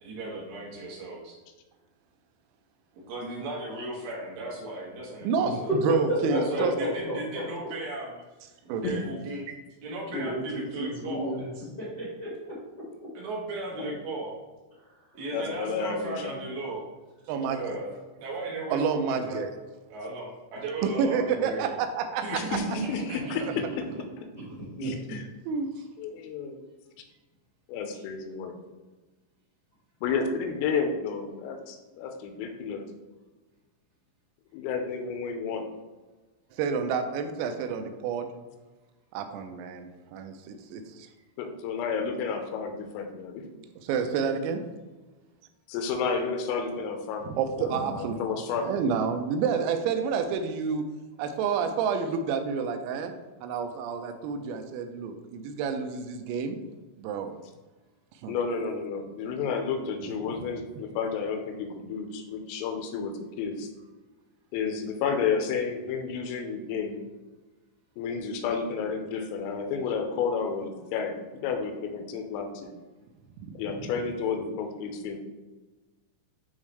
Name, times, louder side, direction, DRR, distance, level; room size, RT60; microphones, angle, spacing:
voice 1, 0.0-1.4 3.1-5.7 6.2-8.1 8.6-9.5 9.8-11.3 13.1-14.3 15.1-16.9 17.5-19.4 19.9-21.7 22.2-23.6, right 2 dB, 70° right, -4 dB, 3.2 m, -36 dB
voice 2, 5.2-5.5 6.1-7.1 10.1-11.5 11.8-12.5 24.3-25.2, equal, 65° left, -9 dB, 1.0 m, -32 dB
voice 3, 5.8-6.7 8.7-9.0 17.3-17.6 18.7-19.5 20.8-22.6 25.5-25.7 36.5-38.3 39.1-41.1 43.8-44.6 47.3-48.2 48.6-50.8 51.2-53.1 53.4-56.6 57.0-57.3 58.2-58.4 73.4-73.8, right 6 dB, 85° right, 7 dB, 3.3 m, -29 dB
voice 4, 15.3-16.4 22.3-23.8 24.8-25.2 26.0-26.6 27.7-28.5 30.0-32.8 34.5-35.7 41.4-43.5 45.7-47.3 47.6-48.7 58.3-63.7 64.5-67.0 68.0-71.1 71.4-72.7 73.5-75.2, left 5 dB, 90° left, 5 dB, 3.3 m, -31 dB
9.9 x 3.6 x 3.2 m, 1.2 s
omnidirectional pair, 6.0 m